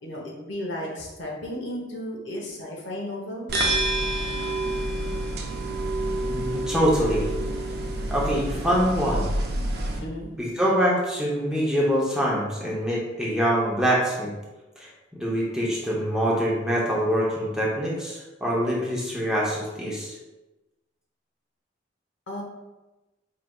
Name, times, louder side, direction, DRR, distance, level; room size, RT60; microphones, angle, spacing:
voice 1, 0.0-3.5 10.0-10.3 22.3-22.4, left 1 dB, 80° left, -1 dB, 0.9 m, -34 dB
sound 1, 3.5-10.0, right 1 dB, 55° right, 0.5 m, -28 dB
voice 2, 6.2-7.3 8.1-9.3 10.4-14.3 14.8-20.2, equal, 5° right, -5 dB, 0.7 m, -25 dB
4.7 x 3.2 x 2.3 m, 1.1 s
head